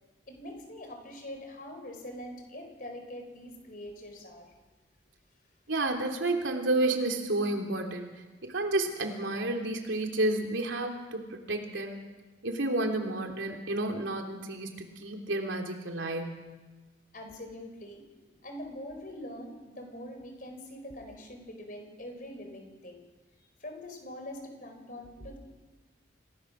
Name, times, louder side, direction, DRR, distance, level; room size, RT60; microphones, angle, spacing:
voice 1, 0.3-4.5 17.1-23.0 23.6-25.4, left 1 dB, 45° left, 5 dB, 4.4 m, -43 dB
voice 2, 5.7-8.1 8.4-12.0 12.4-16.4, right 2 dB, 85° right, 3 dB, 3.2 m, -31 dB
27.5 x 18.5 x 6.5 m, 1.2 s
head